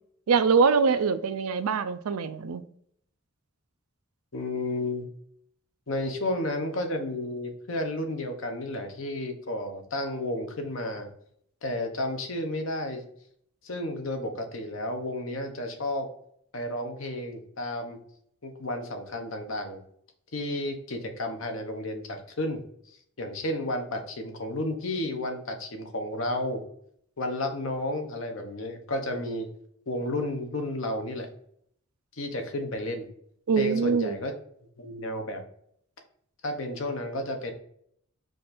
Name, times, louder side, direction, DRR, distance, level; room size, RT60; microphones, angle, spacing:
voice 1, 0.3-2.6 33.5-34.2, right 5 dB, 90° right, 0.4 m, -23 dB
voice 2, 4.3-5.1 5.9-11.1 11.6-13.0 13.6-16.1 16.5-18.0 18.4-19.8 20.3-26.6 27.2-29.5 29.9-31.3 32.1-33.1 33.6-34.3 34.8-35.4 36.4-37.5, left 1 dB, 65° left, 0.9 m, -32 dB
5.0 x 2.6 x 4.1 m
head